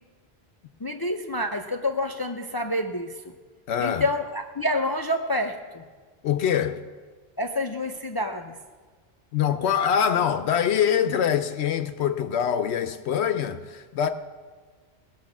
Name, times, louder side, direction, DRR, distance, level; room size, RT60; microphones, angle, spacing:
voice 1, 0.8-3.2 3.8-5.8 7.4-8.6, left 1 dB, 30° left, 0.5 m, -28 dB
voice 2, 3.7-4.0 6.2-6.8 9.3-14.1, left 8 dB, 80° left, 0.9 m, -24 dB
19.0 x 6.3 x 7.3 m
omnidirectional pair, 1.1 m